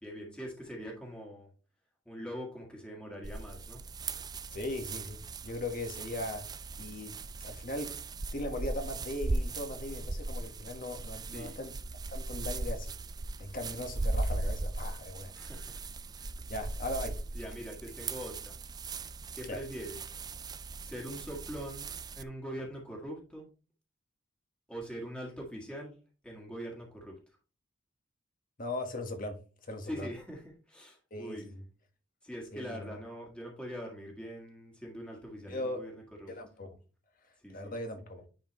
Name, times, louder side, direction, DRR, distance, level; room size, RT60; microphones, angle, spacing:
voice 1, 0.0-1.5 2.1-3.8 11.3-11.6 15.3-15.8 16.2-16.3 17.3-18.6 19.3-20.1 20.8-21.9 22.1-23.5 24.7-25.9 26.2-27.1 29.8-30.4 30.7-31.5 32.2-36.3 37.4-37.7, equal, 5° left, 1.7 m, -43 dB
sound 1, 3.2-22.2, right 2 dB, 20° right, 0.4 m, -38 dB
voice 2, 4.5-6.5 6.8-8.0 8.3-11.7 12.1-12.9 13.4-15.3 16.5-17.2 19.5-19.6 28.6-29.4 29.7-30.1 31.1-31.6 32.5-33.0 35.5-35.8 36.3-36.8 37.5-38.2, left 1 dB, 50° left, 1.4 m, -39 dB
10.0 x 4.4 x 3.1 m
head